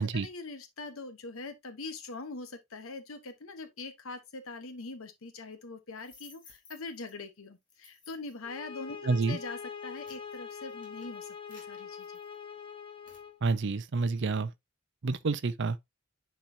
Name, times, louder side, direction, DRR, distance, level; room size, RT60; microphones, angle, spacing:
voice 1, 0.0-9.0 9.3-12.1, left 3 dB, 70° left, 1.0 m, -43 dB
sound 1, 5.9-7.1 7.7-8.4 9.1-9.3 9.7-12.6 13.1-13.3, left 4 dB, 40° left, 3.4 m, -57 dB
sound 2, 8.4-13.4, left 6 dB, 25° left, 1.0 m, -44 dB
voice 2, 9.0-9.4 13.4-14.5 15.0-15.8, right 4 dB, 55° right, 0.6 m, -28 dB
10.0 x 4.5 x 2.7 m
head